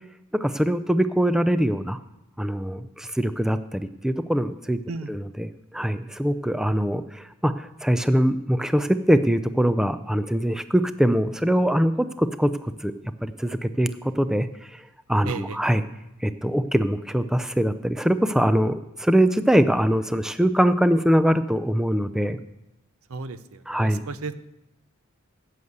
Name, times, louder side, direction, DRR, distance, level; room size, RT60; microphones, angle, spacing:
voice 1, 0.3-2.0 2.4-4.8 5.1-12.9 13.2-14.8 15.1-15.8 16.2-22.4 23.7-24.0, equal, 5° right, 11 dB, 0.4 m, -23 dB
voice 2, 15.2-15.6 23.1-24.4, right 4 dB, 70° right, 13 dB, 0.7 m, -34 dB
11.0 x 6.5 x 8.0 m, 0.91 s
head